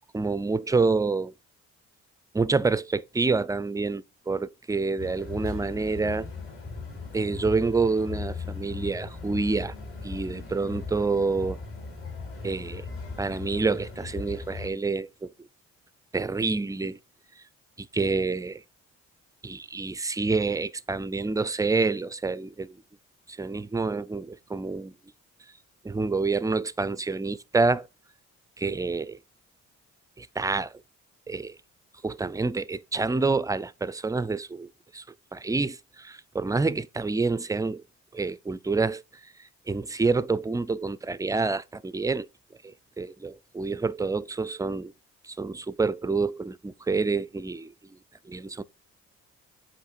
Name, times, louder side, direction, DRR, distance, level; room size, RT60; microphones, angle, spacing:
voice 1, 0.1-1.3 2.3-6.3 7.1-9.7 10.0-11.6 12.4-12.9 13.2-15.3 16.1-17.0 17.8-18.6 19.4-22.8 23.3-24.9 25.8-27.9 28.6-29.2 30.2-30.7 31.3-31.6 32.0-34.7 34.9-35.0 35.3-37.8 38.1-39.0 39.7-42.3 42.6-44.9 45.2-47.7 48.3-48.6, right 3 dB, 10° right, 0.4 m, -27 dB
sound 1, 5.0-14.7, left 4 dB, 45° left, 3.2 m, -38 dB
8.1 x 3.1 x 4.4 m
cardioid pair, 90°, 30 cm